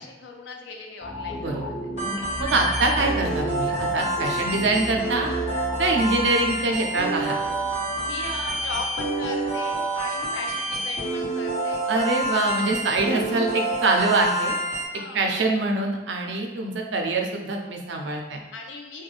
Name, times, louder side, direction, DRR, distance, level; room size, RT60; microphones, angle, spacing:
voice 1, 0.0-1.7 7.8-11.9 14.9-15.4 18.5-19.0, left 3 dB, 80° left, 3 dB, 0.4 m, -38 dB
sound 1, 1.0-10.3 10.7-10.8, left 1 dB, 20° left, 0.4 m, -34 dB
sound 2, 2.0-14.9, right 2 dB, 40° left, 1.1 m, -28 dB
voice 2, 2.4-5.3 5.8-7.4 11.9-14.5 15.1-18.4, right 2 dB, 70° right, 2 dB, 0.4 m, -24 dB
2.4 x 2.2 x 3.1 m, 1.1 s
head